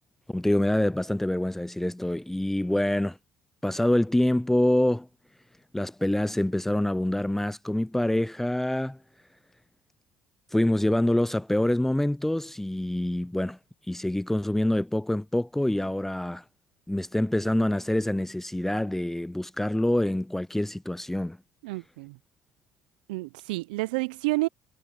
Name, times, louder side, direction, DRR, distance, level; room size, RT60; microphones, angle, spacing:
voice 1, 0.3-3.2 3.6-5.1 5.7-9.0 10.5-13.6 13.9-16.4 16.9-21.4, left 1 dB, 5° left, 0.6 m, -26 dB
voice 2, 21.6-22.2 23.1-24.5, right 22 dB, 80° right, 0.7 m, -29 dB
hypercardioid pair, 60°, 5 cm